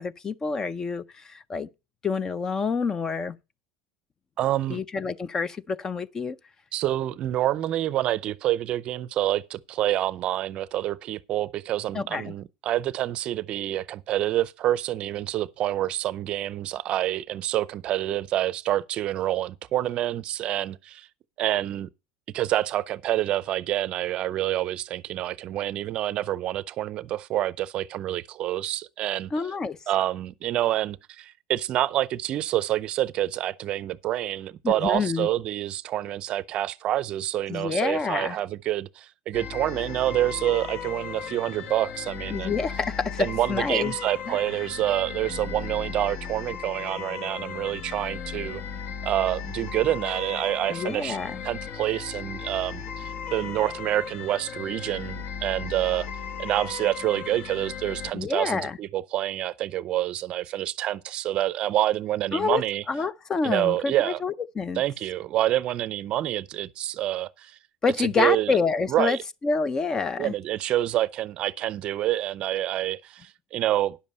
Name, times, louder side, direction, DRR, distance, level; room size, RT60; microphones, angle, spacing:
voice 1, 0.0-1.7 2.0-3.4 4.7-6.4 11.9-12.3 29.3-29.8 34.6-35.3 37.5-38.4 42.3-43.9 44.3-44.4 50.7-51.4 58.1-58.8 62.3-62.6 62.9-64.8 67.8-69.2 69.4-70.3, left 5 dB, 25° left, 0.5 m, -27 dB
voice 2, 4.4-4.8 6.7-21.1 21.4-21.9 22.3-29.3 29.9-42.6 43.2-48.6 49.0-51.2 51.4-56.1 56.4-62.8 63.4-64.2 64.8-67.6 68.0-68.6 68.9-69.2 70.2-74.0, right 13 dB, 45° right, 0.5 m, -27 dB
sound 1, 39.3-58.1, left 7 dB, 50° left, 1.1 m, -36 dB
10.0 x 7.2 x 5.4 m
supercardioid pair, 115°, 2 cm